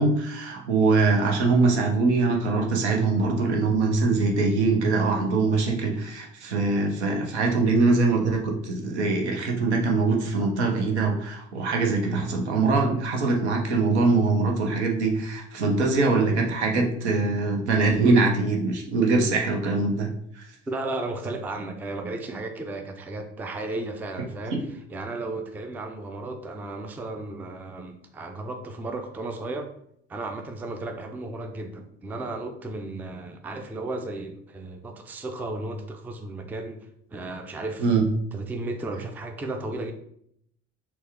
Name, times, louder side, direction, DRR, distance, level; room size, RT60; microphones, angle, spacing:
voice 1, 0.0-20.1 20.3-20.5 24.5-24.6 37.8-38.1, right 3 dB, 75° right, 2 dB, 0.8 m, -23 dB
voice 2, 20.7-24.6 24.9-29.7 30.1-37.9 38.3-39.9, right 2 dB, 5° right, 6 dB, 0.3 m, -34 dB
4.3 x 2.2 x 3.5 m, 0.70 s
figure-of-eight pair, 60°, 34 cm